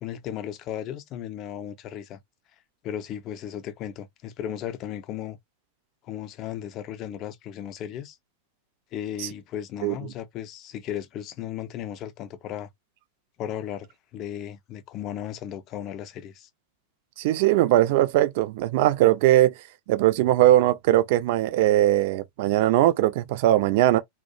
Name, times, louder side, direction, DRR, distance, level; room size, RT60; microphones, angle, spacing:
voice 1, 0.0-2.2 2.8-5.4 6.0-8.2 8.9-12.7 13.4-16.5, left 10 dB, 35° left, 0.4 m, -35 dB
voice 2, 17.2-19.5 19.9-24.0, right 14 dB, 50° right, 0.3 m, -20 dB
2.3 x 2.0 x 2.6 m
figure-of-eight pair, 90°, 0 cm